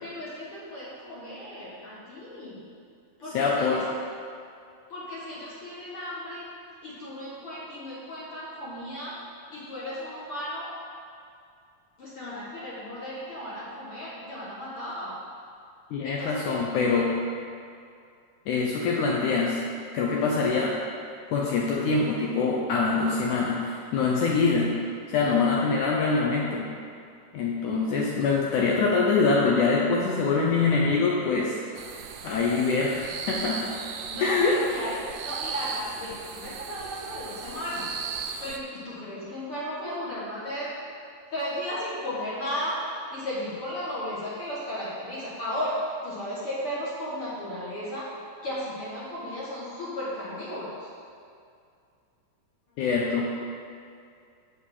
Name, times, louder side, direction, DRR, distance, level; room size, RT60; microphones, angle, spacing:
voice 1, 0.0-2.6 3.2-3.8 4.9-6.4 6.8-9.2 9.5-10.7 12.0-15.1 16.0-16.6 34.1-38.0 38.4-40.7 41.3-48.1 48.4-50.9, equal, 55° left, -8 dB, 1.7 m, -35 dB
voice 2, 3.3-3.9 15.9-17.2 18.5-19.6 19.9-20.8 21.3-24.8 25.1-26.7 27.3-31.6 32.2-33.7 34.2-34.6 52.8-53.3, left 4 dB, 80° left, -2 dB, 1.8 m, -24 dB
sound 1, 31.8-38.6, right 6 dB, 80° right, 1.9 m, -37 dB
6.3 x 6.0 x 7.4 m, 2.3 s
omnidirectional pair, 4.4 m